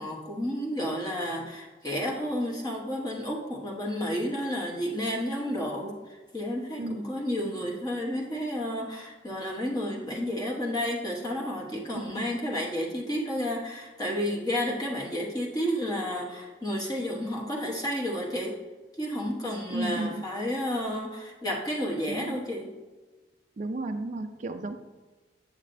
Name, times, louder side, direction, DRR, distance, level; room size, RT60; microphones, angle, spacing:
voice 1, 0.0-18.5 19.0-22.7, equal, 20° left, -3 dB, 1.0 m, -31 dB
voice 2, 11.9-12.3 19.7-20.3 22.1-22.4 23.6-24.8, right 2 dB, 40° right, 6 dB, 0.4 m, -33 dB
8.5 x 7.5 x 2.6 m, 1.2 s
head